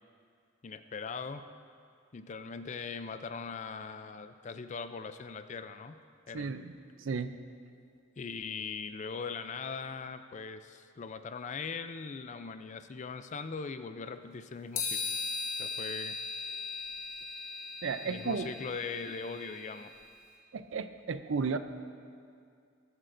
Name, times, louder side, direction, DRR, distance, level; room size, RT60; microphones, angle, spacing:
voice 1, 0.6-1.4 2.1-6.0 6.3-6.6 8.2-15.2 15.6-16.2 18.0-19.9, left 5 dB, 35° left, 10 dB, 0.4 m, -40 dB
voice 2, 6.3-6.7 7.0-7.3 17.8-18.5 20.5-21.6, right 5 dB, 70° right, 11 dB, 0.5 m, -33 dB
sound 1, 14.7-20.0, left 4 dB, 80° left, 1.9 m, -38 dB
14.0 x 12.5 x 2.6 m, 2.3 s
head